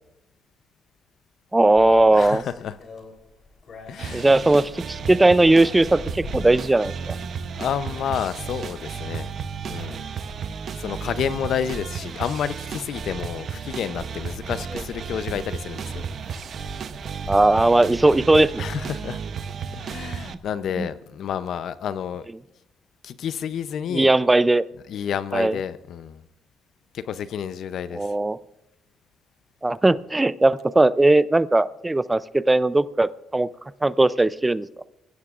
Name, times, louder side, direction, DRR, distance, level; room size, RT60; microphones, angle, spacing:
voice 1, 1.5-2.4 4.1-7.2 17.3-18.6 20.8-20.9 23.9-24.6 25.3-25.6 27.9-28.4 29.6-33.5 33.8-34.7, right 2 dB, 15° right, 0.5 m, -18 dB
sound 1, 1.7-19.0, left 2 dB, 55° left, 3.6 m, -44 dB
voice 2, 2.1-2.8 3.9-4.3 7.5-9.3 9.6-10.0 10.7-16.0 18.6-19.2 19.7-22.3 23.0-24.1 24.9-26.2 26.9-28.1, left 8 dB, 70° left, 0.6 m, -30 dB
sound 2, 4.0-20.3, right 6 dB, 55° right, 0.8 m, -33 dB
26.0 x 16.0 x 2.5 m
cardioid pair, 90°, 0 cm